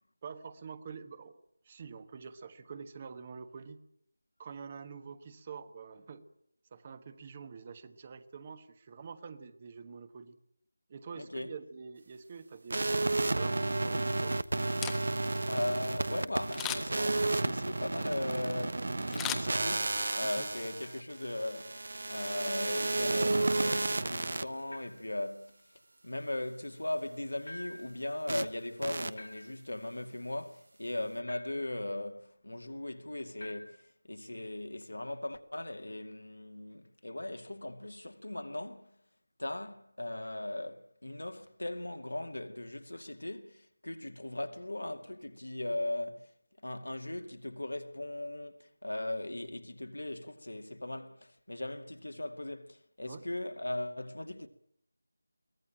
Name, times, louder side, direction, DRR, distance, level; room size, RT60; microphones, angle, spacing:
voice 1, 0.2-1.4 1.6-3.8 4.4-6.2 6.7-10.4 10.9-14.4 20.2-20.5 53.0-53.2, right 5 dB, 25° right, 1.3 m, -46 dB
voice 2, 11.1-11.5 15.5-21.8 22.1-25.6 26.0-39.0 39.4-46.3 46.6-54.5, left 1 dB, 75° left, 2.4 m, -38 dB
sound 1, 12.7-24.4 28.3-28.5 28.8-29.1, right 2 dB, 55° right, 1.0 m, -32 dB
Camera, 14.6-15.4 16.5-17.1 19.1-20.1 20.5-20.6, left 10 dB, 5° left, 1.1 m, -38 dB
sound 2, 20.8-21.2 22.6-22.9 24.7-25.1 27.4-28.0 29.2-29.8 31.3-31.8 33.4-33.9, left 2 dB, 55° left, 2.6 m, -49 dB
23.0 x 17.5 x 8.9 m
figure-of-eight pair, 165°, 0 cm